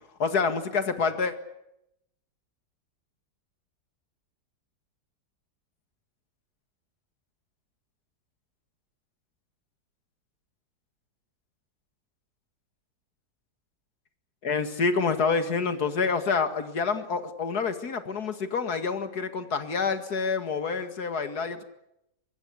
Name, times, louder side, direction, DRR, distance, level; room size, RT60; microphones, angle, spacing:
voice 1, 0.2-1.3 14.4-21.6, left 5 dB, 65° left, 9 dB, 2.5 m, -27 dB
25.0 x 21.0 x 8.3 m, 0.81 s
omnidirectional pair, 1.8 m